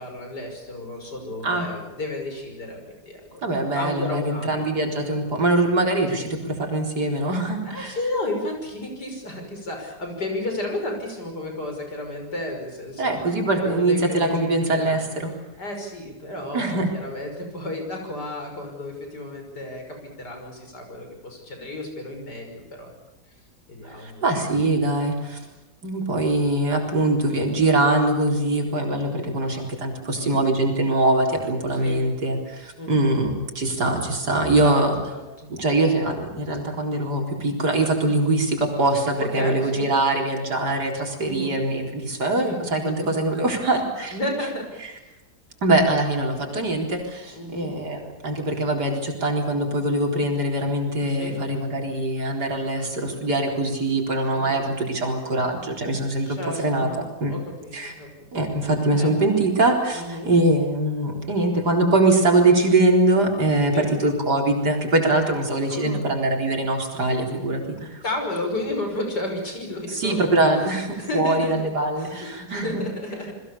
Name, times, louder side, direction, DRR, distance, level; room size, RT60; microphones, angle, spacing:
voice 1, 0.0-3.2 3.7-5.2 7.7-13.2 13.5-15.2 15.6-22.9 23.7-24.2 31.7-32.0 32.8-33.1 34.4-35.5 39.3-39.9 41.2-41.6 42.4-42.6 43.0-43.2 44.1-44.7 45.1-45.2 47.3-47.7 51.1-51.4 54.3-54.6 56.2-58.1 58.9-59.4 59.9-60.3 63.7-63.9 65.7-66.2 68.0-70.4 70.7-71.7 72.0-73.3, left 1 dB, 75° left, 3 dB, 6.5 m, -32 dB
voice 2, 3.4-8.0 13.0-15.3 16.5-16.9 23.8-25.4 25.8-34.9 35.5-44.1 45.6-56.4 56.6-56.9 57.2-57.3 57.7-57.9 58.3-68.0 69.9-72.9, right 2 dB, 75° right, 2 dB, 4.7 m, -23 dB
28.5 x 21.0 x 7.0 m, 1.0 s
omnidirectional pair, 1.8 m